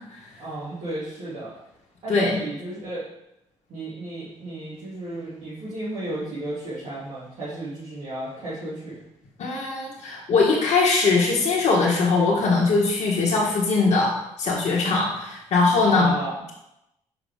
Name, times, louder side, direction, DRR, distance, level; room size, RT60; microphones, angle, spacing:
voice 1, 0.4-1.5 2.0-3.1 3.7-9.0 15.9-16.4, right 1 dB, 65° right, -11 dB, 2.4 m, -33 dB
voice 2, 2.1-2.4 9.4-14.1 14.4-16.1, left 3 dB, 60° left, -4 dB, 1.4 m, -21 dB
5.6 x 5.2 x 3.6 m, 0.85 s
hypercardioid pair, 55°, 13 cm